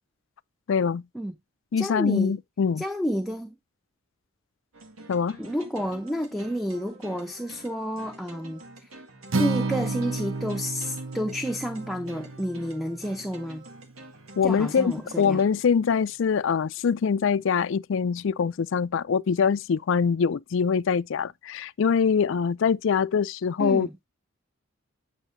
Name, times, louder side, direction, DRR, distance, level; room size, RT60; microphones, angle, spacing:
voice 1, 0.7-1.0 1.7-2.8 5.1-5.4 14.4-24.1, left 6 dB, 65° left, 0.4 m, -24 dB
voice 2, 1.8-2.4 2.8-3.6 5.4-8.6 9.4-13.6 14.4-15.4 23.6-23.9, equal, ahead, 0.7 m, -30 dB
sound 1, 4.7-15.5, right 2 dB, 90° right, 1.8 m, -47 dB
Acoustic guitar, 9.3-13.5, right 3 dB, 70° right, 0.9 m, -31 dB
9.0 x 6.5 x 2.6 m
head